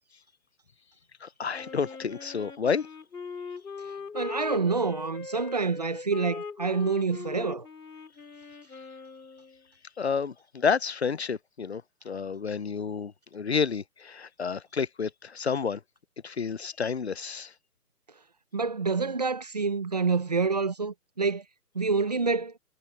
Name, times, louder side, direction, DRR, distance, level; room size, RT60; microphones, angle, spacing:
voice 1, 1.2-2.9 10.0-15.8 16.2-17.5, left 6 dB, 45° left, 0.7 m, -30 dB
Wind instrument woodwind instrument, 1.5-9.7, left 5 dB, 80° left, 5.3 m, -40 dB
voice 2, 4.1-7.7 18.5-21.4 21.7-22.5, right 4 dB, 25° right, 0.9 m, -27 dB
hypercardioid pair, 170°, 47 cm